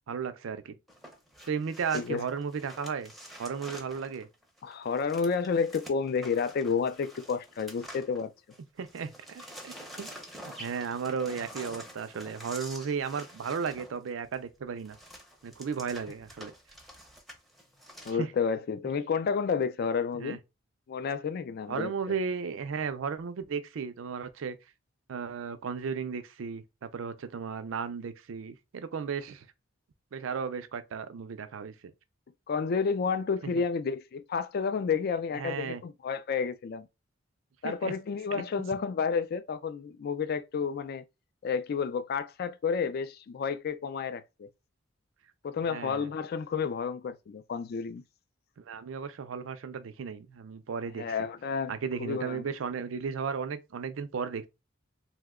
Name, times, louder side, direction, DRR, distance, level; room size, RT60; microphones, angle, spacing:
voice 1, 0.1-0.8 1.5-3.1 3.4-4.3 8.8-10.1 10.6-15.0 15.4-16.5 18.2-18.3 20.2-20.4 21.7-24.6 25.1-29.5 30.1-31.7 35.3-35.8 37.6-37.9 38.3-38.4 45.6-46.1 48.6-51.2 51.7-54.5, right 6 dB, 85° right, 0.4 m, -35 dB
sound 1, 0.9-8.6 8.9-18.1, equal, ahead, 0.6 m, -48 dB
voice 2, 4.6-8.3 18.1-20.4 20.9-21.9 32.5-36.9 37.6-41.0 41.4-44.5 45.4-48.0 51.0-51.7 52.0-52.4, left 5 dB, 55° left, 0.3 m, -30 dB
2.8 x 2.1 x 3.5 m
head